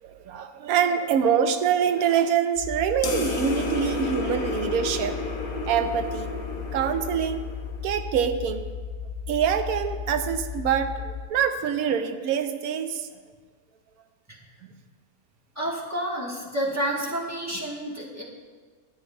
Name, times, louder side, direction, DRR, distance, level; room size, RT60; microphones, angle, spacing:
voice 1, 0.0-5.2 5.7-6.3 6.7-7.4 7.8-8.6 9.3-13.1 14.6-14.7, right 8 dB, 80° right, 9 dB, 1.1 m, -25 dB
sound 1, 2.6-11.2, left 6 dB, 25° left, 0.7 m, -36 dB
sound 2, 3.0-7.9, left 3 dB, 80° left, 1.4 m, -32 dB
voice 2, 15.5-18.2, right 1 dB, 10° right, -5 dB, 1.2 m, -29 dB
13.0 x 9.2 x 2.2 m, 1.5 s
omnidirectional pair, 1.5 m